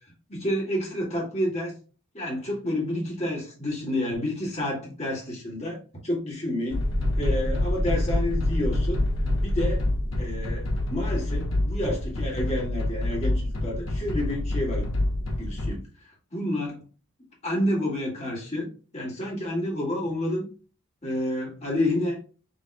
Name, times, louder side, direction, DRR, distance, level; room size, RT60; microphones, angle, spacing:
voice 1, 0.3-1.7 2.1-5.8 6.0-6.9 7.2-9.0 9.4-9.9 10.2-14.9 15.4-15.8 16.3-16.8 17.4-20.5 21.0-22.2, left 1 dB, 30° left, -3 dB, 2.0 m, -29 dB
sound 1, 6.7-15.8, left 1 dB, 60° left, 1.3 m, -26 dB
7.0 x 3.4 x 2.2 m, 0.36 s
head